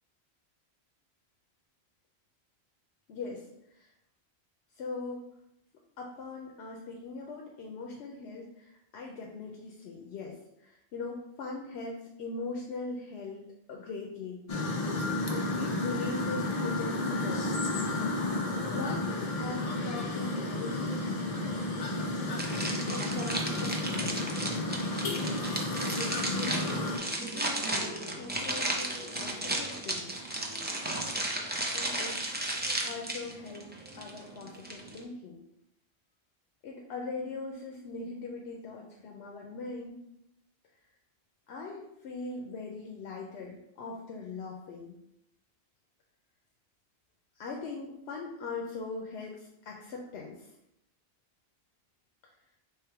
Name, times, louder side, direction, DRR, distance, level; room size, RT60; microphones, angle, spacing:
voice 1, 3.1-3.9 4.8-5.3 6.0-14.4 15.3-17.7 18.7-21.1 22.4-24.3 26.3-26.8 27.3-30.1 31.7-33.7 34.0-35.4 36.6-40.0 41.5-44.9 47.3-50.5 52.2-52.3, left 3 dB, 85° left, 0 dB, 0.9 m, -41 dB
sound 1, 14.5-27.0, left 2 dB, 40° left, 0.6 m, -32 dB
sound 2, 22.4-35.0, right 1 dB, 15° right, 0.4 m, -34 dB
3.5 x 3.3 x 4.5 m, 0.81 s
omnidirectional pair, 1.1 m